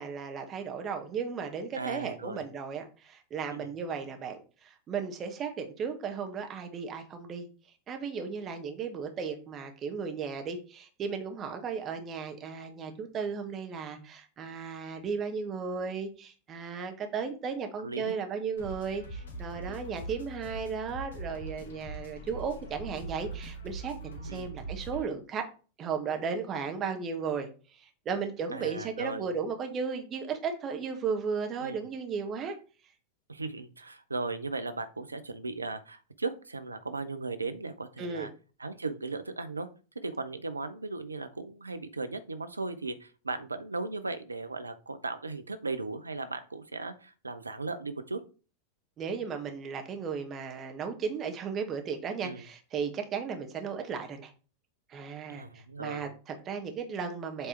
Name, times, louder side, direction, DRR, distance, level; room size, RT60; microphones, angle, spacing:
voice 1, 0.0-7.5 7.9-25.5 25.8-32.5 38.0-38.3 49.0-54.3 54.9-57.5, right 6 dB, 30° right, 5 dB, 1.4 m, -35 dB
voice 2, 1.7-2.4 3.5-3.7 17.8-18.2 19.6-20.0 24.3-24.5 28.5-29.3 31.6-31.8 33.3-38.3 38.6-39.7 40.0-48.2 52.2-52.4 55.3-56.1, right 3 dB, 80° right, 10 dB, 0.7 m, -37 dB
sound 1, 18.6-25.0, right 2 dB, 65° left, 2.0 m, -42 dB
7.6 x 3.5 x 4.3 m, 0.36 s
figure-of-eight pair, 90°, 0 cm